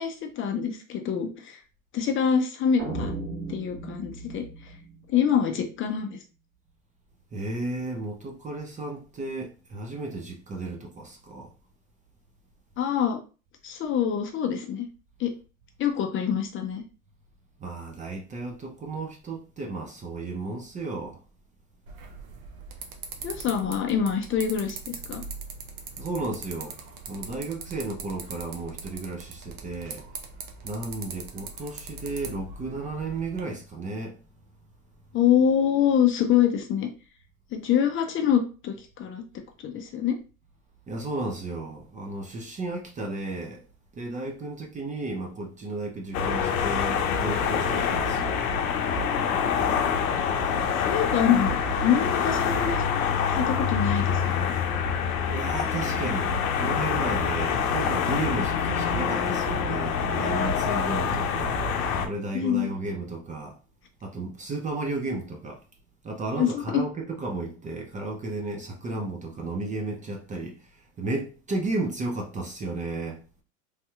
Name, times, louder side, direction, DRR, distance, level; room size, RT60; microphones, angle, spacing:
voice 1, 0.0-1.6 1.9-3.1 3.5-4.4 5.1-6.2 12.8-13.2 13.6-14.9 15.2-15.3 15.8-16.8 23.2-25.2 35.1-36.9 37.5-39.2 39.6-40.2 50.9-51.5 51.8-52.8 53.3-54.5 62.3-62.7 66.4-66.8, left 8 dB, 30° left, 0.5 m, -25 dB
sound 1, 2.8-5.9, right 2 dB, 55° right, 1.3 m, -36 dB
voice 2, 7.3-11.5 17.6-21.2 26.0-26.8 27.1-30.1 30.6-34.2 40.9-43.6 43.9-48.4 55.3-61.7 62.0-63.6 64.0-65.6 66.0-73.2, right 2 dB, 20° right, 0.4 m, -33 dB
sound 2, 21.9-33.4, right 4 dB, 75° right, 0.8 m, -41 dB
sound 3, 46.1-62.1, left 6 dB, 75° left, 0.7 m, -26 dB
3.3 x 2.7 x 2.3 m
hypercardioid pair, 95°, 42 cm